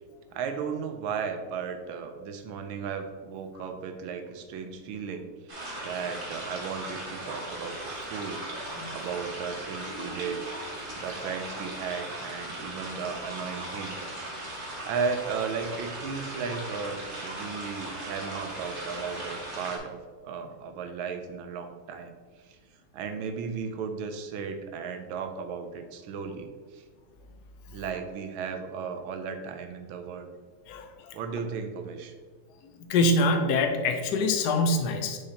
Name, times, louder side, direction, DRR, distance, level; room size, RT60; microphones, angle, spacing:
voice 1, 0.3-5.3 5.8-14.1 14.8-22.1 22.5-22.6 22.9-26.8 27.7-30.3 31.1-32.1, right 6 dB, 75° right, 6 dB, 1.4 m, -35 dB
sound 1, 5.5-19.8, right 1 dB, 30° right, 1.0 m, -38 dB
voice 2, 32.9-35.2, left 2 dB, 70° left, 6 dB, 0.9 m, -24 dB
6.6 x 5.6 x 2.9 m, 1.5 s
omnidirectional pair, 2.4 m